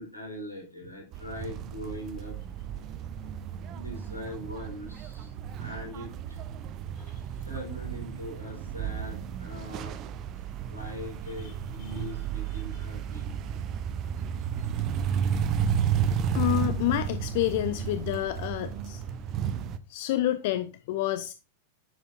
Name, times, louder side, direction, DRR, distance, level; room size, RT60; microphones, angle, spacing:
voice 1, 0.0-2.5 3.7-5.3 5.6-6.4 7.4-10.0 10.6-13.3 19.0-19.1, left 1 dB, 85° left, 4.4 m, -41 dB
sound 1, 1.1-19.8, right 8 dB, 35° right, 0.7 m, -32 dB
voice 2, 16.3-19.0 19.9-21.3, left 14 dB, 50° left, 0.5 m, -29 dB
10.0 x 6.8 x 2.6 m
figure-of-eight pair, 90°, 0 cm